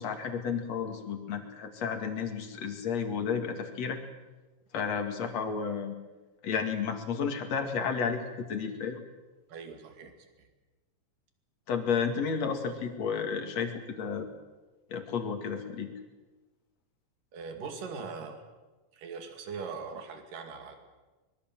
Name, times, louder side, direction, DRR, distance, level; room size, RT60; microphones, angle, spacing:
voice 1, 0.0-4.0 4.7-5.9 6.4-9.0 11.7-14.3 14.9-15.9, left 6 dB, 55° left, 5 dB, 3.2 m, -32 dB
voice 2, 9.5-10.1 17.3-18.4 18.9-20.8, right 5 dB, 75° right, 5 dB, 4.0 m, -40 dB
24.0 x 21.5 x 7.6 m, 1.2 s
omnidirectional pair, 3.9 m